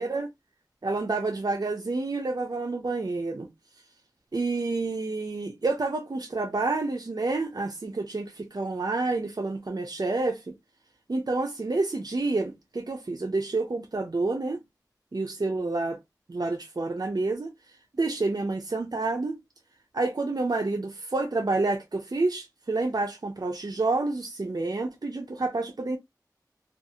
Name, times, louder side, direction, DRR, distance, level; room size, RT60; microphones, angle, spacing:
voice 1, 0.8-3.5 4.3-10.5 11.1-14.6 15.1-16.0 16.3-17.5 18.0-19.4 19.9-26.0, right 3 dB, 65° right, 0.5 m, -29 dB
2.5 x 2.4 x 2.6 m
wide cardioid pair, 45°, 7 cm